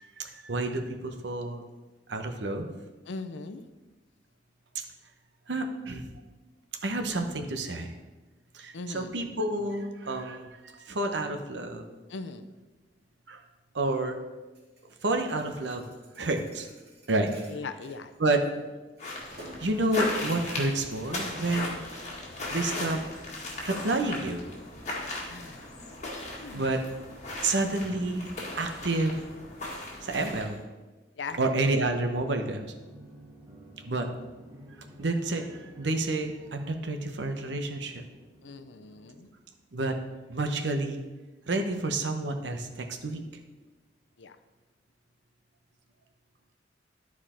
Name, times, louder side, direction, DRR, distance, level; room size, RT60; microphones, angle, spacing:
voice 1, 0.0-1.6 2.1-2.7 4.7-4.8 5.5-6.1 6.8-8.0 8.5-11.9 13.3-13.4 13.7-14.1 15.0-15.8 16.2-16.7 17.1-17.3 18.2-18.4 19.6-21.8 22.5-23.0 23.6-24.4 26.5-26.8 27.4-28.3 28.6-29.2 30.0-30.6 31.4-32.7 33.9-34.1 35.0-38.0 39.7-40.0 40.3-41.0 41.5-43.2, right 2 dB, 75° right, 5 dB, 0.9 m, -29 dB
voice 2, 3.1-3.6 8.7-9.1 12.1-12.5 17.5-18.7 25.3-25.7 26.4-26.7 31.1-31.4 38.4-39.3 44.2-44.4, left 4 dB, 90° left, 10 dB, 0.6 m, -40 dB
Thump thud, 14.5-18.6 19.0-19.8, right 1 dB, 60° right, 2.5 m, -52 dB
sound 1, 19.0-30.6, left 2 dB, 40° left, 1.8 m, -37 dB
sound 2, 32.4-40.0, equal, 20° right, 1.3 m, -53 dB
11.5 x 4.8 x 4.3 m, 1.2 s
head